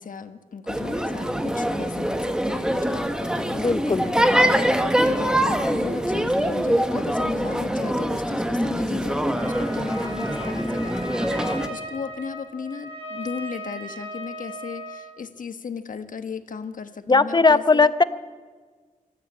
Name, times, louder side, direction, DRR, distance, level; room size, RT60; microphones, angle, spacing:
voice 1, 0.0-17.9, left 5 dB, 75° left, 9 dB, 1.3 m, -37 dB
sound 1, 0.7-11.7, equal, 5° right, 1.2 m, -24 dB
voice 2, 3.5-4.1 17.1-18.0, left 4 dB, 30° left, 14 dB, 0.7 m, -18 dB
Trumpet, 9.3-15.2, equal, 40° right, 6.7 m, -37 dB
24.5 x 13.5 x 8.6 m, 1.5 s
wide cardioid pair, 120°, 14 cm